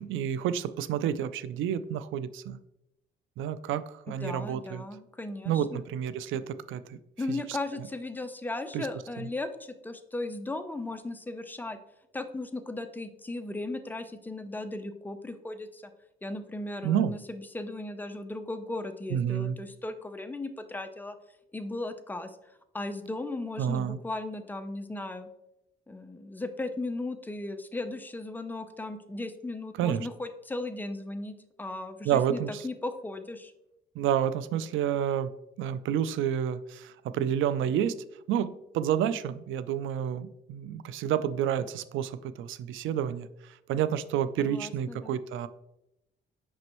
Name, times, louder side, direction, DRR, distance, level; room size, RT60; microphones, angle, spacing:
voice 1, 0.0-2.6 3.4-4.8 5.5-7.0 7.3-7.4 8.7-8.9 16.8-17.1 19.1-19.6 23.6-24.0 29.8-30.1 32.0-32.6 34.0-35.3 35.6-38.0 38.3-45.5, right 9 dB, 80° right, 15 dB, 0.4 m, -29 dB
voice 2, 4.1-5.8 7.2-11.8 12.1-15.9 16.2-21.2 21.5-22.4 22.7-25.3 25.9-33.5 44.4-45.2, left 2 dB, 10° left, 8 dB, 0.6 m, -36 dB
6.2 x 5.2 x 3.0 m, 0.87 s
cardioid pair, 90°, 20 cm